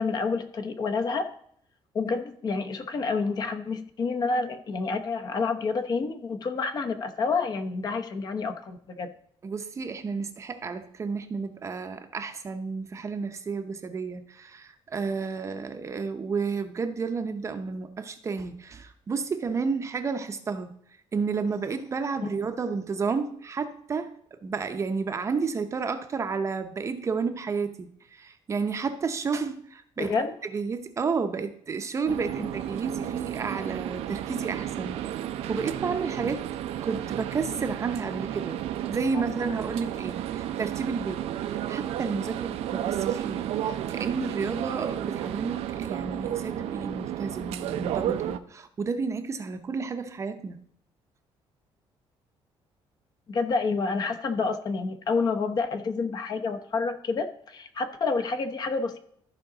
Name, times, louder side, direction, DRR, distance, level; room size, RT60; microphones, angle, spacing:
voice 1, 0.0-1.3 1.9-9.1 22.2-22.3 30.0-30.3 32.4-32.5 39.1-39.2 53.3-59.0, left 4 dB, 40° left, 7 dB, 0.8 m, -29 dB
voice 2, 9.4-20.7 21.1-30.1 30.5-35.1 35.5-36.5 36.8-50.6, right 5 dB, 30° right, 8 dB, 0.6 m, -31 dB
sound 1, 32.1-48.4, right 11 dB, 85° right, 0.6 m, -32 dB
14.0 x 5.0 x 3.9 m, 0.66 s
cardioid pair, 160°, 10 cm